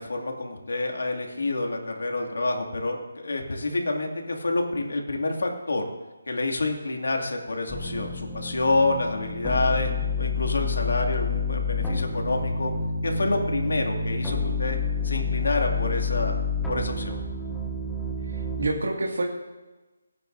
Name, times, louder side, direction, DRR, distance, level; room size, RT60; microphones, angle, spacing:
voice 1, 0.0-5.8 6.3-9.9 10.2-12.7 13.0-14.8 15.0-16.4 16.7-17.1, left 2 dB, 80° left, 1 dB, 2.3 m, -28 dB
sound 1, 7.7-18.7, left 4 dB, ahead, 0.8 m, -29 dB
voice 2, 18.2-19.2, right 2 dB, 65° right, -1 dB, 2.0 m, -28 dB
28.0 x 9.5 x 2.6 m, 1.2 s
hypercardioid pair, 180°, 0 cm